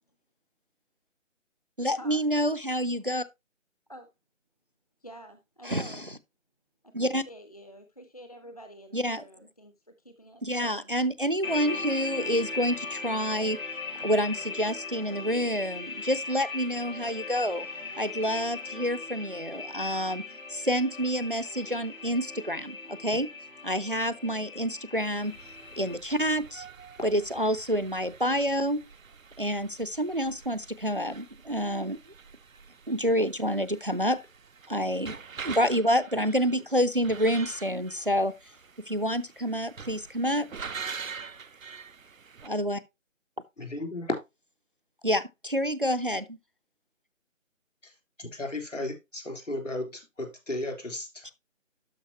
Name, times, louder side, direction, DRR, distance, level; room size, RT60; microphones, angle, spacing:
voice 1, 1.8-3.2 5.6-5.9 6.9-7.2 8.9-9.2 10.4-13.6 14.0-17.7 18.0-20.2 20.5-23.3 23.6-25.3 25.8-26.6 27.0-28.8 29.4-32.0 32.9-34.2 34.7-35.2 35.4-38.3 38.9-40.5 42.4-42.8 45.0-46.4 51.2-51.3, equal, 45° right, 0.4 m, -28 dB
voice 2, 5.0-6.1 7.0-10.9, equal, 30° left, 0.6 m, -48 dB
sound 1, 11.4-25.9, left 4 dB, 85° left, 3.4 m, -38 dB
sound 2, 24.9-42.5, right 5 dB, 80° right, 0.7 m, -45 dB
voice 3, 43.6-44.2 47.8-51.3, left 2 dB, 70° left, 3.6 m, -35 dB
12.0 x 5.0 x 2.8 m
figure-of-eight pair, 160°, 39 cm